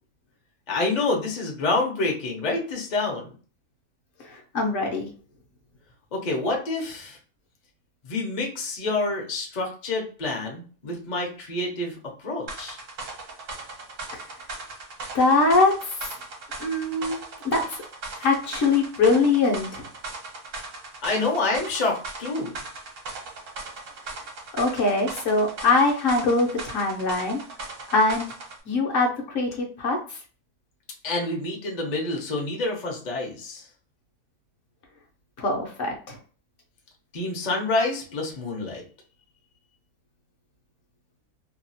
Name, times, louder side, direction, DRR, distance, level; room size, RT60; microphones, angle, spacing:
voice 1, 0.7-3.3 6.1-7.2 8.0-12.8 21.0-22.5 31.0-33.6 37.1-38.8, left 2 dB, 40° left, 0 dB, 0.7 m, -27 dB
voice 2, 4.2-5.1 15.1-16.0 16.6-17.2 17.4-17.8 18.2-19.9 24.5-27.4 27.9-28.2 28.7-30.2 35.4-36.2, left 3 dB, 60° left, 0 dB, 1.0 m, -22 dB
sound 1, 12.5-28.6, right 3 dB, 60° right, 1.1 m, -38 dB
2.8 x 2.3 x 2.6 m, 0.40 s
omnidirectional pair, 1.6 m